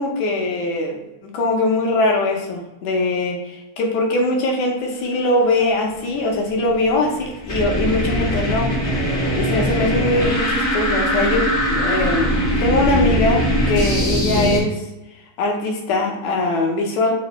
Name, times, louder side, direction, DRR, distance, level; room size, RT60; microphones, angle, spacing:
voice 1, 0.0-8.7 9.3-14.8 15.4-17.1, left 2 dB, 75° left, 1 dB, 2.2 m, -21 dB
sound 1, 6.5-14.6, equal, 45° left, 0.5 m, -21 dB
5.1 x 2.1 x 4.0 m, 0.98 s
omnidirectional pair, 3.5 m